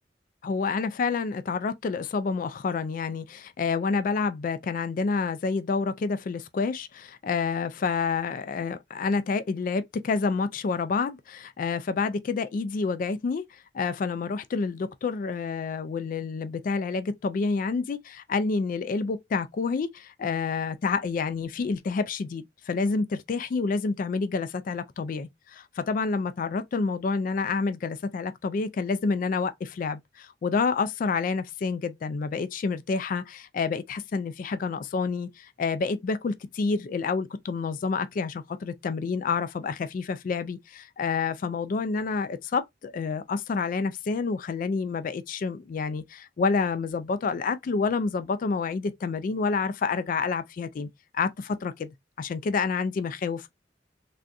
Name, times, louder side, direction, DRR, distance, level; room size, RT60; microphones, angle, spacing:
voice 1, 0.4-50.9 51.1-51.9 52.2-53.5, left 4 dB, 45° left, 0.3 m, -28 dB
3.4 x 2.5 x 2.5 m
head